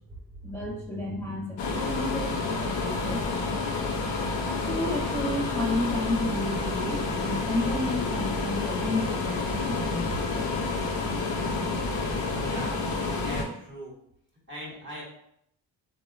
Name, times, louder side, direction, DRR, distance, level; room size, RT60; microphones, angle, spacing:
voice 1, 0.4-3.6 4.6-10.1, left 2 dB, 5° left, -7 dB, 0.7 m, -32 dB
sound 1, 1.6-13.4, left 3 dB, 70° left, 0.7 m, -29 dB
voice 2, 12.4-12.8 13.1-13.9 14.5-15.0, right 1 dB, 25° right, -4 dB, 1.4 m, -39 dB
3.5 x 2.1 x 2.3 m, 0.72 s
supercardioid pair, 55°, 45 cm